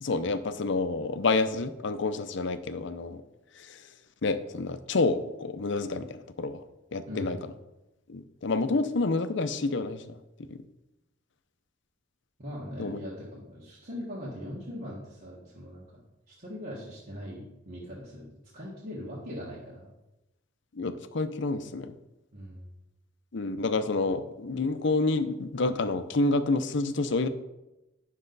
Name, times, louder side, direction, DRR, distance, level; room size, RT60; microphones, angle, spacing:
voice 1, 0.0-3.2 3.6-3.8 4.2-6.6 6.9-7.5 8.1-10.1 10.5-10.6 12.8-13.0 20.7-21.9 23.3-27.3, left 3 dB, 65° left, 10 dB, 0.6 m, -28 dB
voice 2, 12.4-16.0 16.4-18.3 18.5-19.9 22.3-22.6, equal, 45° right, -7 dB, 1.8 m, -40 dB
10.0 x 6.3 x 4.0 m, 0.96 s
head